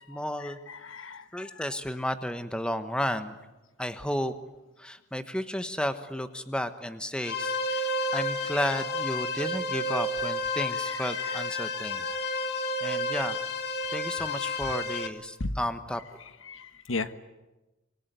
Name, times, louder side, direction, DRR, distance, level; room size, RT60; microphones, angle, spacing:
voice 1, 0.1-0.6 1.3-3.3 3.8-4.3 4.8-12.1 12.8-13.4 13.9-16.0, equal, 5° left, 10 dB, 1.2 m, -33 dB
voice 2, 0.7-1.2 11.8-12.2 15.4-15.5 16.5-17.1, left 3 dB, 85° left, 11 dB, 1.4 m, -35 dB
sound 1, 7.2-15.1, left 2 dB, 55° left, 1.9 m, -31 dB
25.5 x 23.5 x 9.3 m, 1.1 s
head